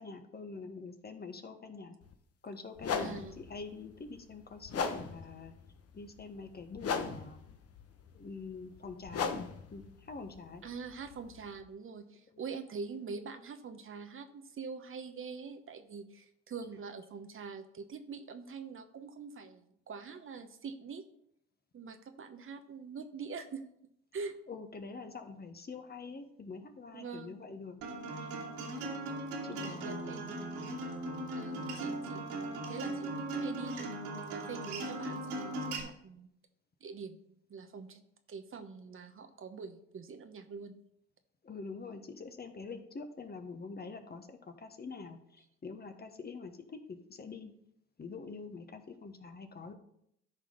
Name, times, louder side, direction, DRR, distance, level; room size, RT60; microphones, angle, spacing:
voice 1, 0.0-2.0 2.4-5.5 5.9-7.4 8.1-9.3 9.7-10.6 12.3-12.4 24.5-27.8 28.2-28.3 29.4-30.2 41.4-47.5 48.0-49.7, left 4 dB, 30° left, 7 dB, 1.3 m, -45 dB
sound 1, 2.0-2.1 2.8-11.6, left 6 dB, 45° left, 1.1 m, -39 dB
voice 2, 3.0-3.4 10.6-21.0 21.7-23.7 24.1-24.3 26.9-27.4 29.5-30.6 31.3-34.0 34.3-36.3 36.8-37.2 37.5-38.0 38.3-40.7, right 5 dB, 40° right, 8 dB, 1.1 m, -44 dB
Acoustic guitar, 27.8-35.8, right 2 dB, 75° right, 2.8 m, -38 dB
13.5 x 4.9 x 4.0 m, 0.73 s
hypercardioid pair, 55°, 33 cm